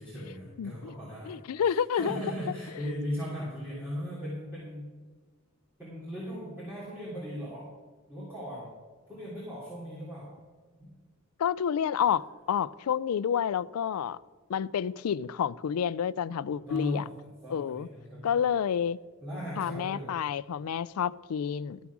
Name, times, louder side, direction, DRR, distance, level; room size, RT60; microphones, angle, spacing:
voice 1, 0.0-4.9 5.8-7.7 8.1-8.7 9.1-10.3 10.8-10.9 16.7-18.5 19.2-20.2, equal, 10° right, 3.1 m, -38 dB
voice 2, 0.6-0.9 1.3-2.2 11.4-14.2 14.5-17.0 17.5-17.9 18.2-19.0 19.6-21.8, left 8 dB, 80° left, 0.4 m, -29 dB
12.5 x 7.2 x 6.1 m
head